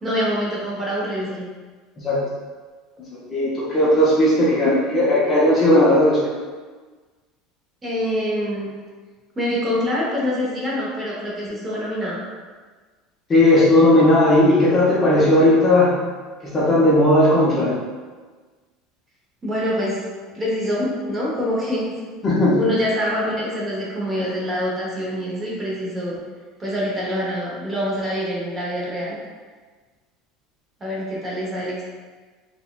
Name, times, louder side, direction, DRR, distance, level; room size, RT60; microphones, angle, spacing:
voice 1, 0.0-1.4 7.8-8.7 9.4-12.2 19.4-20.0 20.3-21.9 22.6-26.2 26.6-29.2 30.8-31.8, equal, 15° right, -5 dB, 0.7 m, -25 dB
voice 2, 3.1-6.2 13.3-16.0 16.4-17.8 22.2-22.6, left 1 dB, 20° left, -6 dB, 0.5 m, -16 dB
4.0 x 2.1 x 2.2 m, 1.4 s
cardioid pair, 155°, 0 cm